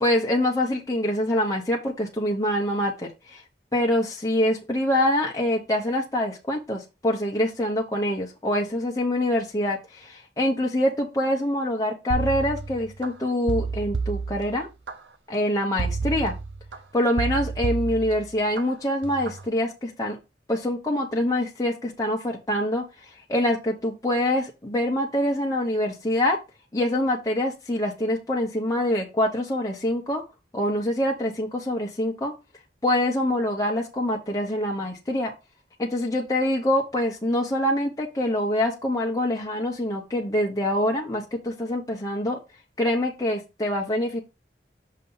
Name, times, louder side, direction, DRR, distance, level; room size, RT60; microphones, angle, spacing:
voice 1, 0.0-3.4 3.7-14.7 15.3-16.4 16.9-20.2 20.5-26.4 26.7-30.2 30.5-32.3 32.8-35.3 35.8-42.4 42.8-44.2, left 1 dB, 20° left, -2 dB, 0.8 m, -25 dB
sound 1, 12.1-13.1 13.5-14.9 15.8-16.8 17.2-18.6 19.0-19.4, right 4 dB, 80° right, 0.7 m, -30 dB
6.6 x 2.7 x 5.5 m, 0.26 s
head